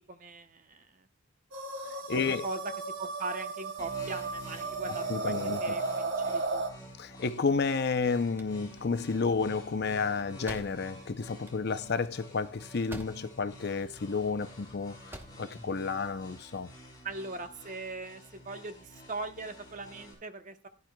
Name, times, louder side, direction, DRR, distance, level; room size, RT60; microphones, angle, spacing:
voice 1, 0.1-1.1 2.1-2.7 3.0-6.7 17.0-20.7, right 3 dB, 40° right, 0.9 m, -40 dB
sound 1, 1.5-6.7, right 3 dB, 70° right, 2.2 m, -34 dB
voice 2, 2.1-2.4 5.1-5.6 7.0-15.0 15.4-16.7, left 4 dB, 55° left, 0.6 m, -31 dB
sound 2, 3.8-20.1, equal, 20° left, 4.5 m, -50 dB
sound 3, 8.2-13.5 13.8-14.5 14.9-15.5, right 1 dB, 10° right, 0.9 m, -48 dB
16.5 x 10.5 x 2.3 m
head